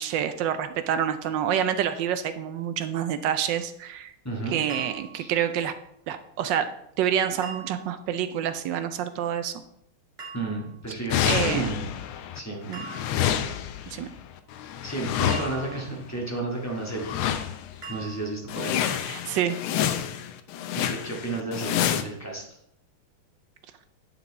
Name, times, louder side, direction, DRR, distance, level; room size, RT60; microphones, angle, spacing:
voice 1, 0.0-4.1 4.5-5.7 6.1-6.7 7.0-9.6 11.3-11.7 12.7-12.8 13.9-14.1 19.1-19.6, right 9 dB, 75° right, 10 dB, 1.1 m, -27 dB
voice 2, 4.2-4.6 5.2-5.3 10.3-11.9 12.3-12.7 14.8-17.1 17.9-18.8 20.7-22.4, right 2 dB, 10° left, -2 dB, 1.6 m, -32 dB
sound 1, 4.7-5.4 7.4-8.1 10.2-10.9 12.7-13.4 15.3-16.2 17.8-18.6, right 6 dB, 30° right, 2.0 m, -42 dB
sound 2, 11.1-12.4 12.6-15.9 16.9-17.8 18.1-18.2 18.5-22.0, left 10 dB, 80° left, 1.5 m, -28 dB
9.3 x 5.8 x 4.0 m, 0.75 s
omnidirectional pair, 2.4 m